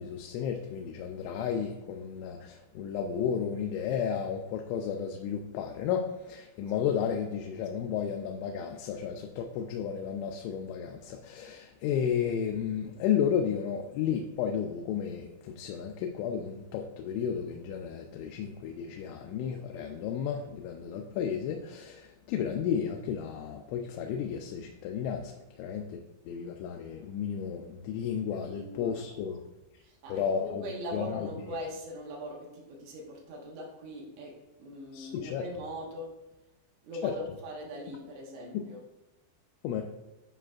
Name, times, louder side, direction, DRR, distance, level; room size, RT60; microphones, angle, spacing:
voice 1, 0.0-26.0 26.3-29.4 29.7-29.8 30.1-30.7 30.9-31.3 34.9-35.4 37.0-37.1 38.5-38.6 39.6-39.8, left 8 dB, 85° left, 3 dB, 2.9 m, -33 dB
voice 2, 28.3-28.9 29.8-36.2 36.8-38.8, equal, 75° right, -2 dB, 3.1 m, -41 dB
10.0 x 4.9 x 2.4 m, 1.0 s
omnidirectional pair, 5.2 m